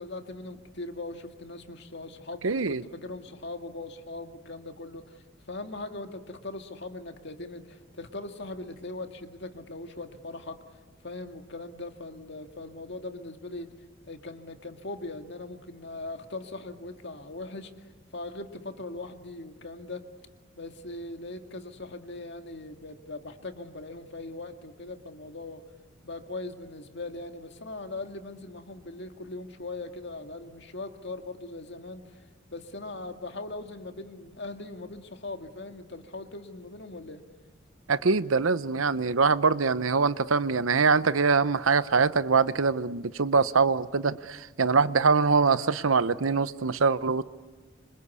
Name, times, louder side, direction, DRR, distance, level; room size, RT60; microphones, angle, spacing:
voice 1, 0.0-10.6 11.0-13.7 14.1-17.9 18.1-20.0 20.5-25.6 26.0-32.2 32.5-37.2, left 2 dB, 60° left, 2.0 m, -40 dB
voice 2, 2.4-2.8 37.9-47.2, right 4 dB, 90° right, 0.8 m, -23 dB
26.5 x 26.0 x 8.4 m
head